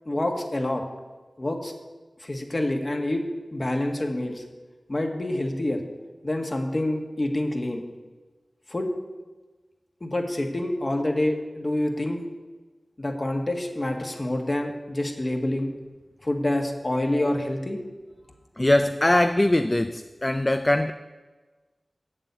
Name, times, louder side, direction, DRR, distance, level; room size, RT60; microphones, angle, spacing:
voice 1, 0.0-0.8 1.4-1.7 2.2-4.4 4.9-5.8 6.2-7.8 8.7-8.9 10.0-12.2 13.0-15.7 16.2-17.8, left 1 dB, 45° left, 3 dB, 1.7 m, -27 dB
voice 2, 18.6-20.9, left 1 dB, 30° left, 9 dB, 0.4 m, -21 dB
8.4 x 7.5 x 8.2 m, 1.3 s
cardioid pair, 40°, 0 cm